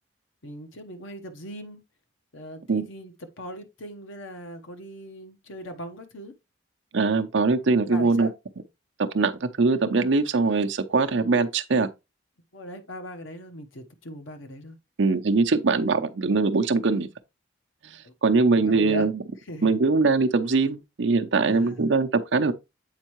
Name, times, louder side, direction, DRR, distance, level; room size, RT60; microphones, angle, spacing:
voice 1, 0.4-1.8 2.3-6.3 7.9-8.3 12.5-14.8 18.0-18.1 18.6-19.1 19.5-19.8 21.4-21.9, equal, 80° left, 1.1 m, -39 dB
voice 2, 6.9-8.3 9.0-11.9 15.0-17.1 18.2-19.2 19.6-22.5, right 3 dB, 65° right, 0.6 m, -22 dB
8.1 x 4.4 x 3.0 m
head